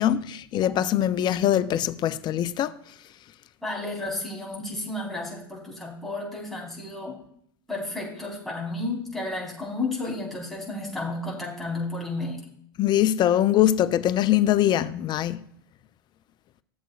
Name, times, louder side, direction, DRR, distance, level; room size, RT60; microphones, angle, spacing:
voice 1, 0.0-2.7 12.8-15.4, left 12 dB, 35° left, 0.4 m, -22 dB
voice 2, 3.6-7.2 7.7-12.5, left 2 dB, 5° left, 3.8 m, -32 dB
14.0 x 7.4 x 2.3 m
hypercardioid pair, 85°, 12 cm